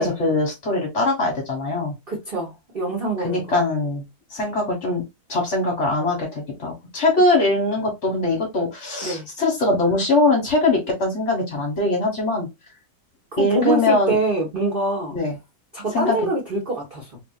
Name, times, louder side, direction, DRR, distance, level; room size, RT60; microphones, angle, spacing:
voice 1, 0.0-1.9 3.2-4.0 4.3-5.0 5.3-12.5 13.4-14.2 15.1-15.3 15.9-16.2, left 2 dB, 45° left, 1.2 m, -21 dB
voice 2, 2.1-3.6 9.0-9.3 13.3-15.2 15.7-17.2, right 2 dB, 35° right, 1.0 m, -25 dB
3.3 x 2.6 x 2.3 m
omnidirectional pair, 2.2 m